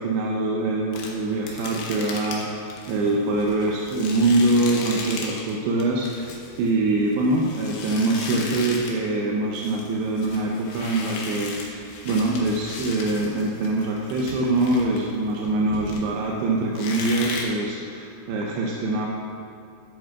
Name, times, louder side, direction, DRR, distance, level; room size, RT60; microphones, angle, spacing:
voice 1, 0.0-19.1, right 2 dB, 80° right, -2 dB, 2.6 m, -24 dB
sound 1, 0.9-5.5 5.8-9.0 9.3-16.3 16.8-17.4, left 4 dB, 75° left, 2.7 m, -36 dB
11.0 x 10.0 x 2.4 m, 2.6 s
omnidirectional pair, 5.1 m